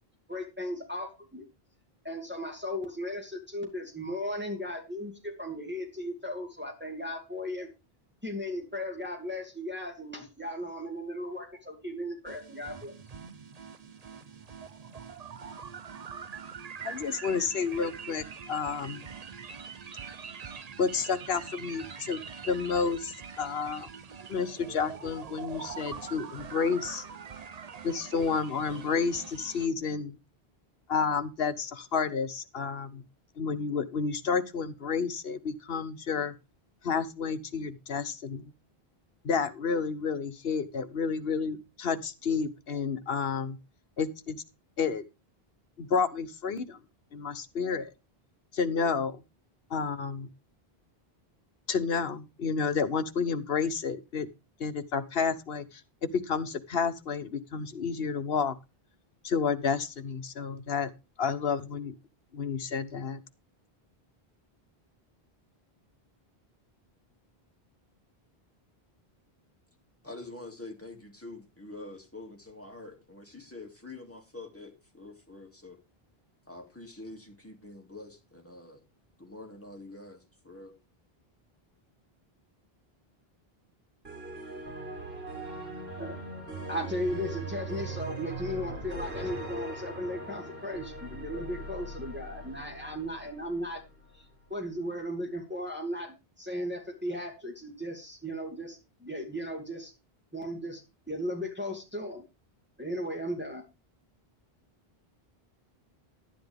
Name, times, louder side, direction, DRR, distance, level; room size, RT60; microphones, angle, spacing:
voice 1, 0.3-1.5 2.0-7.7 8.2-13.0 86.0-86.2 86.7-93.8 94.1-94.2 94.5-99.9 100.3-100.8 101.1-102.2 102.8-103.6, equal, 10° right, 1 dB, 2.5 m, -36 dB
sound 1, 12.3-29.7, right 6 dB, 45° right, 0.8 m, -44 dB
voice 2, 16.8-19.0 20.8-23.9 24.3-27.0 27.8-30.2 30.9-33.0 33.4-36.3 36.8-38.5 39.2-43.6 44.0-44.4 44.8-45.0 45.8-46.8 47.1-47.9 48.5-49.2 49.7-50.3 51.7-54.3 54.6-58.6 59.2-60.9 61.2-61.9 62.3-63.2, left 5 dB, 70° left, 11 dB, 1.2 m, -30 dB
voice 3, 70.0-75.8 76.5-78.8 79.2-80.8, left 2 dB, 15° left, 1 dB, 2.5 m, -46 dB
sound 2, 84.0-94.1, right 2 dB, 85° right, 3.9 m, -40 dB
11.5 x 10.0 x 3.5 m, 0.27 s
omnidirectional pair, 1.0 m